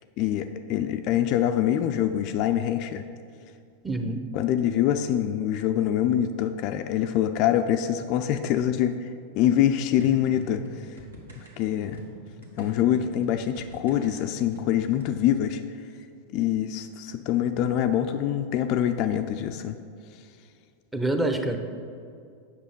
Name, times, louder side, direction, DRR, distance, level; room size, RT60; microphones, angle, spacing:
voice 1, 0.2-3.0 4.3-11.0 11.4-12.0 12.6-15.6 16.3-19.8, left 10 dB, 40° left, 7 dB, 0.3 m, -25 dB
voice 2, 3.8-4.2 20.9-21.6, right 2 dB, 5° right, 5 dB, 0.7 m, -26 dB
sound 1, 10.0-15.2, equal, 70° right, 1.4 m, -43 dB
8.2 x 6.0 x 5.3 m, 2.4 s
figure-of-eight pair, 90°, 0 cm